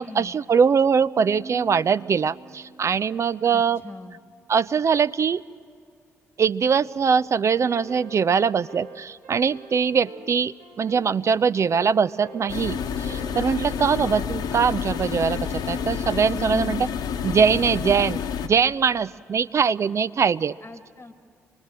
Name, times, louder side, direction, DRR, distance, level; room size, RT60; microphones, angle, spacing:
voice 1, 0.0-3.8 4.5-5.4 6.4-16.9 17.2-20.5, right 6 dB, 40° right, 17 dB, 0.5 m, -22 dB
sound 1, 1.2-4.2, right 1 dB, 90° right, 4.0 m, -44 dB
voice 2, 3.5-4.2 16.5-16.9 20.6-21.1, left 2 dB, 25° left, 9 dB, 1.4 m, -38 dB
sound 2, 7.6-16.3, right 2 dB, 70° right, 1.7 m, -45 dB
sound 3, 12.5-18.5, left 7 dB, 60° left, 1.0 m, -29 dB
25.0 x 19.5 x 7.5 m, 2.3 s
figure-of-eight pair, 40°, 7 cm